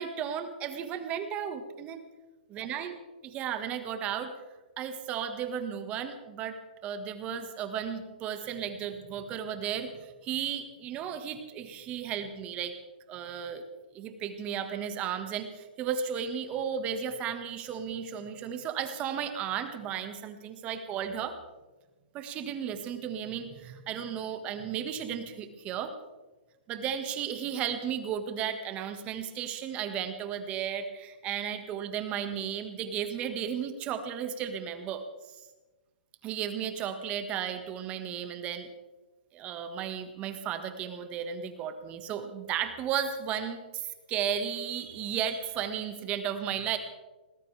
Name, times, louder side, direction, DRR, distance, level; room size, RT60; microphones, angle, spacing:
voice 1, 0.0-2.0 2.5-2.9 3.2-4.3 4.8-12.7 13.1-13.6 13.9-21.4 22.1-25.9 26.7-35.4 36.2-38.7 39.3-46.8, right 8 dB, 25° right, 8 dB, 1.7 m, -34 dB
21.0 x 19.5 x 3.5 m, 1.2 s
hypercardioid pair, 155°, 5 cm